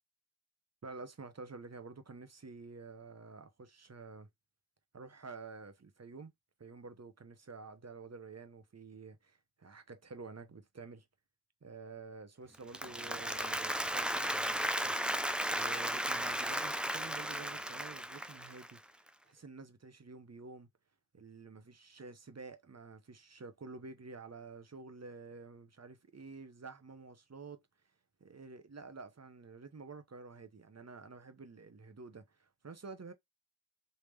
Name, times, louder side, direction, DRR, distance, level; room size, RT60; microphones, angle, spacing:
voice 1, 0.8-4.3 4.9-6.3 6.6-11.1 11.6-15.0 15.5-18.8 19.2-20.7 21.1-27.6 28.2-33.1, right 4 dB, 35° right, 0.8 m, -50 dB
Applause, 12.5-18.8, equal, 5° right, 0.3 m, -35 dB
3.5 x 2.7 x 3.2 m
cardioid pair, 45°, 44 cm